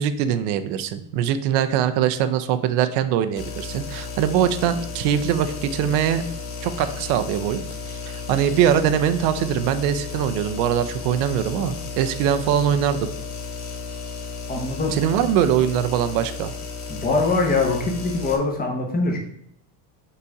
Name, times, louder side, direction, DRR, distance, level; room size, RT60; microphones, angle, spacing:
voice 1, 0.0-6.2 6.6-7.6 7.9-8.0 8.3-13.1 14.9-16.5, right 9 dB, 85° right, 10 dB, 0.8 m, -22 dB
sound 1, 3.4-18.4, left 4 dB, 60° left, 2.1 m, -34 dB
voice 2, 14.5-15.0 16.9-19.2, left 3 dB, 20° left, 2 dB, 1.0 m, -23 dB
5.6 x 4.1 x 4.8 m, 0.70 s
cardioid pair, 175°, 45 cm